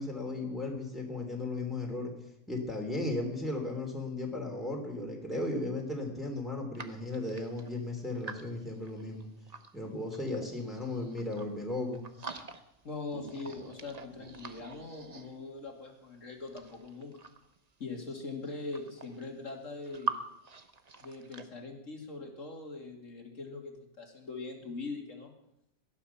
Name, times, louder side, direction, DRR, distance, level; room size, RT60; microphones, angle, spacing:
voice 1, 0.0-2.1 2.5-9.3 9.7-12.0, left 2 dB, ahead, 0 dB, 3.1 m, -35 dB
sound 1, 6.7-9.7 10.1-11.6 11.9-12.8 13.1-15.7 16.3-17.6 18.3-18.4 18.6-20.2 20.4-21.4, right 5 dB, 30° right, 1.0 m, -44 dB
voice 2, 12.8-17.2 17.8-20.2 21.0-25.3, left 3 dB, 60° left, 2 dB, 3.0 m, -42 dB
18.5 x 12.5 x 5.8 m, 0.81 s
omnidirectional pair, 1.5 m